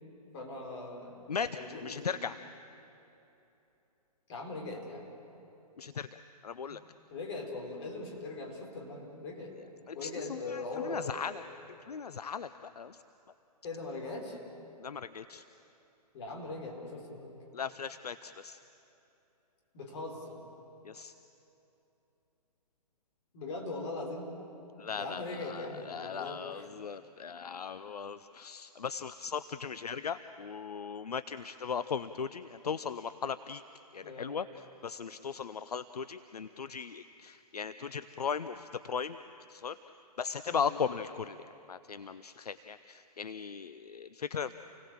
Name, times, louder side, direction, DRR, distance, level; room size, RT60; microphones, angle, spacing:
voice 1, 0.3-2.1 4.3-5.0 6.7-6.8 7.1-9.5 9.9-11.2 13.6-14.4 16.1-17.4 19.7-20.4 23.3-24.3 25.0-26.7 34.0-34.4 40.5-40.8, left 2 dB, 40° left, 1 dB, 4.6 m, -40 dB
voice 2, 1.3-2.4 5.8-6.1 6.4-6.8 9.9-11.4 11.9-12.5 12.8-13.0 14.8-15.4 17.5-18.6 20.8-21.1 24.8-33.6 33.9-34.5 34.8-39.2 39.5-39.8 40.2-41.4 41.7-44.5, left 6 dB, 70° left, 13 dB, 0.6 m, -37 dB
29.0 x 18.0 x 7.5 m, 2.9 s
figure-of-eight pair, 125°, 21 cm